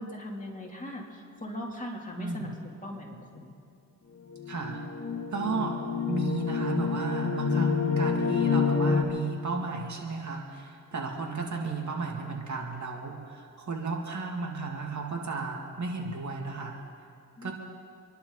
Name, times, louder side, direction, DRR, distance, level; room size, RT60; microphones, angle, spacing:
voice 1, 0.0-3.5 17.4-17.5, left 1 dB, 25° left, -2 dB, 3.3 m, -40 dB
voice 2, 2.2-2.5 4.5-4.8 5.3-5.8 6.1-16.8 17.4-17.5, right 4 dB, 60° right, 1 dB, 2.6 m, -34 dB
sound 1, 4.3-9.0, left 5 dB, 40° left, 1.9 m, -27 dB
28.0 x 11.5 x 4.1 m, 2.5 s
cardioid pair, 65°, 33 cm